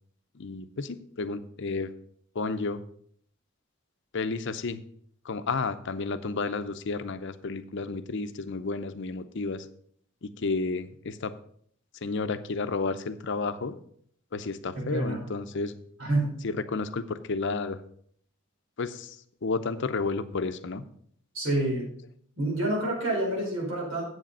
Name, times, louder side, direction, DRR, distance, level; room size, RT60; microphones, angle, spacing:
voice 1, 0.3-1.9 2.3-2.8 4.1-4.8 5.2-9.7 10.2-11.3 12.0-13.8 14.3-15.7 16.4-17.8 18.8-19.2 19.4-20.8, left 4 dB, 60° left, 11 dB, 0.6 m, -31 dB
voice 2, 14.7-15.2 16.0-16.4 21.3-21.9 22.4-24.0, right 1 dB, 70° right, -3 dB, 4.8 m, -28 dB
8.0 x 7.6 x 5.4 m, 0.62 s
head